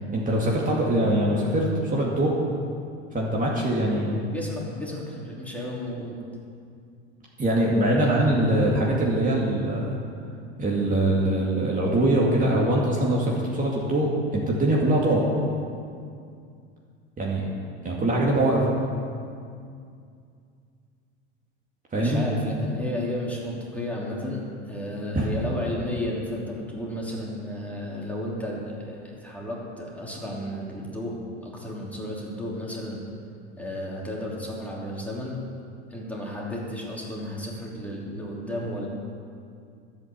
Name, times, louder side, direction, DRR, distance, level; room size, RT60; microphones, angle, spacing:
voice 1, 0.1-2.4 3.1-4.2 7.4-9.9 10.6-15.3 17.2-17.5 17.8-18.7 21.9-22.3 25.1-25.3, right 1 dB, 25° right, -4 dB, 2.3 m, -23 dB
voice 2, 4.3-6.2 7.9-8.3 21.9-31.1 31.4-33.0 33.6-35.4 35.9-38.9, left 1 dB, 5° left, -4 dB, 3.1 m, -33 dB
12.0 x 8.4 x 6.8 m, 2.3 s
hypercardioid pair, 90°, 35 cm